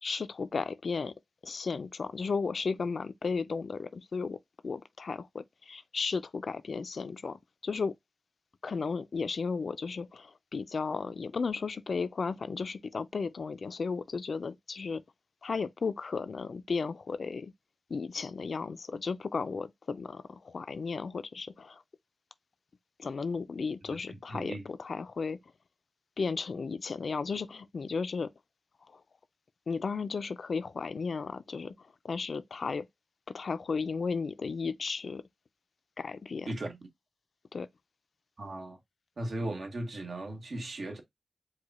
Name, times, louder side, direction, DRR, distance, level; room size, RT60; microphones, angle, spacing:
voice 1, 0.0-1.1 1.4-4.4 4.6-7.9 8.6-15.0 15.4-17.5 17.9-21.8 23.0-25.4 26.2-28.3 29.7-31.7 32.0-32.9 33.3-35.2 36.0-36.5 37.5-37.7, left 4 dB, 80° left, 0.3 m, -34 dB
voice 2, 23.9-24.6 36.5-36.8 38.4-38.8 39.2-41.0, right 1 dB, 70° right, 1.2 m, -37 dB
4.7 x 2.2 x 4.0 m
wide cardioid pair, 100°, 0 cm